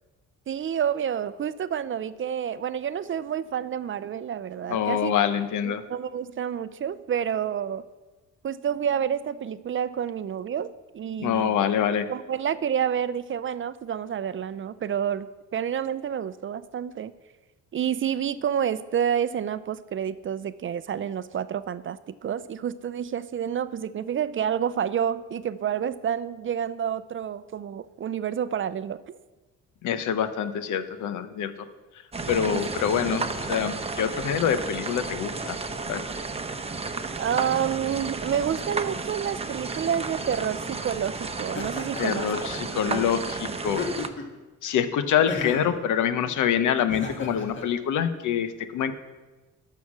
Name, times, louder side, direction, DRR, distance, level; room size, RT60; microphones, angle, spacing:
voice 1, 0.5-5.1 5.6-7.8 8.4-11.5 12.1-17.1 17.7-29.0 32.4-32.6 33.0-33.2 37.2-42.5 42.8-43.1, right 8 dB, 45° right, 15 dB, 0.5 m, -29 dB
voice 2, 4.7-5.8 11.2-12.1 29.8-31.5 32.3-35.6 35.9-36.0 42.0-43.8 44.6-48.9, left 8 dB, 80° left, 11 dB, 0.9 m, -25 dB
sound 1, 32.1-44.1, right 3 dB, 20° right, 0.8 m, -33 dB
Laughter, 41.5-42.6 43.6-44.4 45.3-45.8 46.9-47.7, left 4 dB, 40° left, 1.7 m, -34 dB
12.0 x 5.8 x 6.2 m, 1.2 s
cardioid pair, 90°, 30 cm